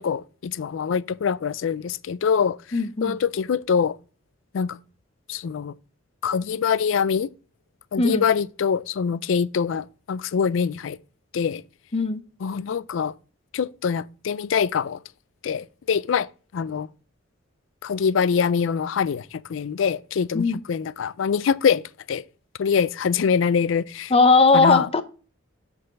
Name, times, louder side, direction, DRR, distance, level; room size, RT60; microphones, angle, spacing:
voice 1, 0.0-2.6 3.0-4.0 4.5-4.8 5.3-5.7 6.2-7.3 7.9-11.0 11.3-11.6 12.4-13.1 13.5-15.0 15.4-16.9 17.8-22.2 22.6-24.1 24.5-24.9, left 6 dB, 70° left, 0.4 m, -24 dB
voice 2, 2.7-3.2 8.0-8.3 11.9-12.2 20.3-20.6 24.1-25.0, left 3 dB, 30° left, 0.7 m, -18 dB
7.7 x 4.1 x 5.2 m
head